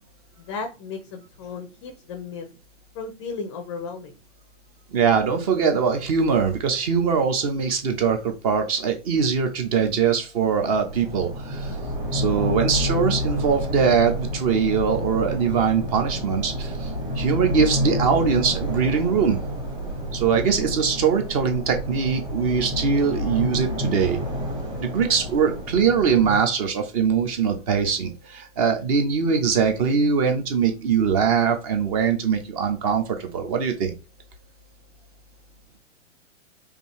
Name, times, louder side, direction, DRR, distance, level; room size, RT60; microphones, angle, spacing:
voice 1, 0.4-2.5 2.9-4.2, left 4 dB, 25° left, 6 dB, 0.6 m, -35 dB
voice 2, 4.9-11.8 12.1-19.4 20.1-24.2 24.8-33.9, right 6 dB, 30° right, 6 dB, 0.9 m, -22 dB
sound 1, 10.7-26.4, equal, 10° right, 1.2 m, -29 dB
5.3 x 2.8 x 3.0 m, 0.30 s
hypercardioid pair, 135°, 39 cm